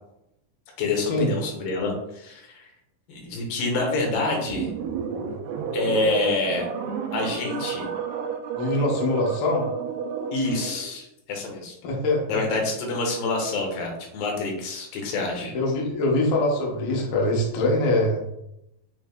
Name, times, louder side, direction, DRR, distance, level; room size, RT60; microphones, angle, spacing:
voice 1, 0.8-2.7 3.1-4.7 5.7-6.7 7.1-7.9 10.3-11.8 12.3-15.5, left 3 dB, 90° left, 1 dB, 2.7 m, -27 dB
sound 1, 4.4-10.9, right 6 dB, 85° right, 2.3 m, -31 dB
voice 2, 8.6-9.7 11.8-12.4 15.5-18.2, left 2 dB, 70° left, -1 dB, 2.2 m, -23 dB
7.5 x 3.2 x 2.2 m, 0.82 s
omnidirectional pair, 3.8 m